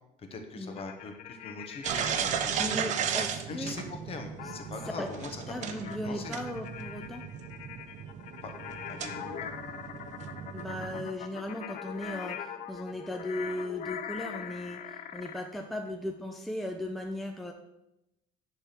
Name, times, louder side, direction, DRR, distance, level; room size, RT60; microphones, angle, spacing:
voice 1, 0.3-6.4 8.4-8.5 8.9-9.5, left 4 dB, 40° left, 5 dB, 1.2 m, -42 dB
sound 1, 0.7-2.8 4.4-15.5, left 8 dB, 55° left, 0.6 m, -42 dB
sound 2, 1.8-11.1, right 8 dB, 50° right, 0.7 m, -36 dB
voice 2, 2.6-3.8 4.4-4.5 5.0-5.1 5.5-7.3 10.5-17.5, left 1 dB, ahead, 3 dB, 0.5 m, -37 dB
10.0 x 3.6 x 5.9 m, 0.89 s
cardioid pair, 135°, 15 cm